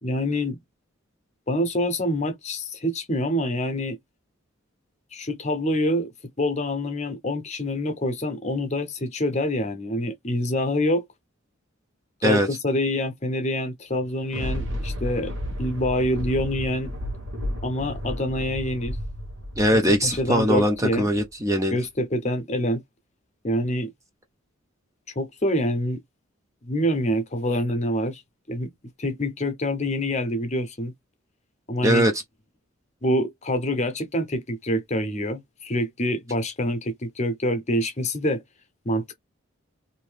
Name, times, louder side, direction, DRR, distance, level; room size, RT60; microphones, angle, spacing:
voice 1, 0.0-0.6 1.5-4.0 5.1-6.1 6.4-11.0 12.2-15.3 15.6-16.9 17.6-19.0 20.0-21.1 21.7-22.8 23.4-23.9 25.2-26.0 26.6-28.2 28.5-28.7 29.0-30.9 31.7-32.1 33.0-38.4 38.8-39.0, left 1 dB, 30° left, 0.7 m, -26 dB
Thunder, 13.9-21.5 21.9-22.0, equal, 55° right, 1.2 m, -33 dB
voice 2, 19.6-21.8 31.8-32.1, equal, 15° right, 0.5 m, -21 dB
2.7 x 2.7 x 3.3 m
head